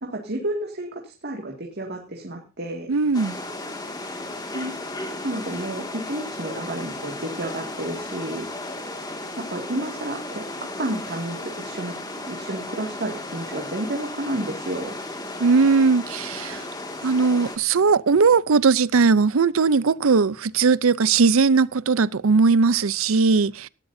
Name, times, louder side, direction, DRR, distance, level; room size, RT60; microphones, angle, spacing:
voice 1, 0.0-2.9 4.5-4.7 5.2-8.5 9.3-10.4 10.8-11.9 12.3-15.0, right 1 dB, 50° right, 2.2 m, -31 dB
voice 2, 2.9-3.4 15.4-16.6 17.0-23.7, right 4 dB, 75° right, 0.6 m, -19 dB
sound 1, 3.1-17.6, left 2 dB, 20° left, 2.1 m, -35 dB
18.5 x 13.0 x 2.7 m
head